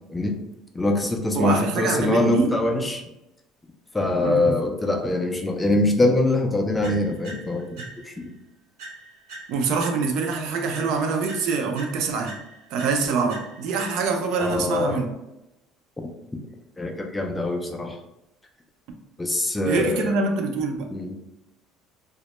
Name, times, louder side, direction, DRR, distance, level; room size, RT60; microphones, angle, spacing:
voice 1, 0.7-3.0 3.9-7.6 8.1-8.3 14.4-15.0 16.8-18.0 19.2-20.2 20.9-21.1, left 2 dB, 10° left, 3 dB, 0.3 m, -23 dB
voice 2, 1.3-2.5 4.2-4.5 7.8-7.9 9.5-12.4 12.7-15.1 19.7-20.9, right 4 dB, 65° right, 5 dB, 0.4 m, -25 dB
sound 1, 6.8-8.3 8.8-10.3 10.7-14.3, right 2 dB, 80° right, 0.8 m, -43 dB
2.1 x 2.0 x 2.9 m, 0.90 s
cardioid pair, 150°, 0 cm